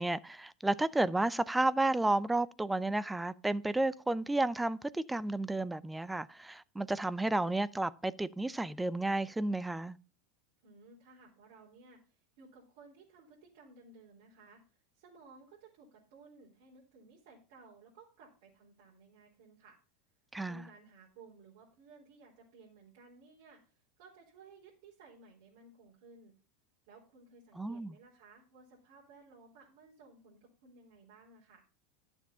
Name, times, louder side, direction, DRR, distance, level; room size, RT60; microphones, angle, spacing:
voice 1, 0.0-10.0 20.3-20.7 27.6-27.9, right 2 dB, 5° right, 0.5 m, -32 dB
voice 2, 10.6-19.8 20.4-26.3 26.9-31.7, right 3 dB, 70° right, 4.0 m, -58 dB
11.5 x 7.2 x 5.6 m
hypercardioid pair, 105°, 0 cm